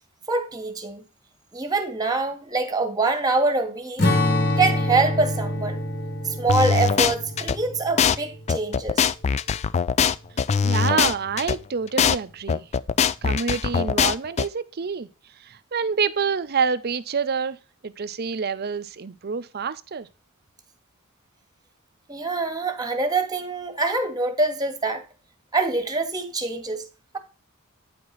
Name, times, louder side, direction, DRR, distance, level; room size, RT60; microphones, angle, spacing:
voice 1, 0.3-1.0 1.5-4.0 4.6-5.8 6.2-9.1 22.1-25.0 25.5-26.9, right 3 dB, 15° right, 1.4 m, -24 dB
Strum, 4.0-8.6, left 1 dB, 50° left, 1.7 m, -26 dB
sound 1, 6.5-7.6 8.0-8.2 8.5-11.6 12.0-12.2 12.5-14.5, left 6 dB, 30° left, 0.3 m, -21 dB
voice 2, 10.6-12.7 13.2-15.1 15.4-17.6 17.8-20.1, right 5 dB, 45° right, 0.6 m, -27 dB
9.4 x 4.8 x 4.1 m
head